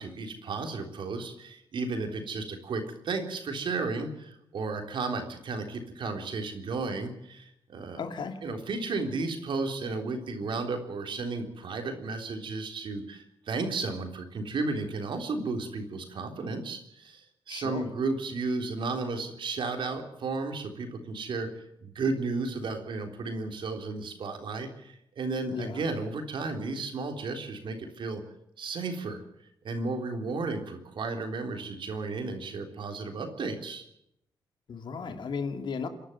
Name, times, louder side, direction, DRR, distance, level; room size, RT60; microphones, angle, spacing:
voice 1, 0.0-8.0 8.4-21.5 21.8-28.2 28.6-29.2 29.6-33.9, right 3 dB, 70° right, 5 dB, 3.7 m, -33 dB
voice 2, 7.9-8.4 17.5-17.9 25.5-25.8 34.7-35.9, left 5 dB, 65° left, 7 dB, 2.4 m, -35 dB
28.0 x 11.5 x 9.3 m, 0.78 s
cardioid pair, 95°, 9 cm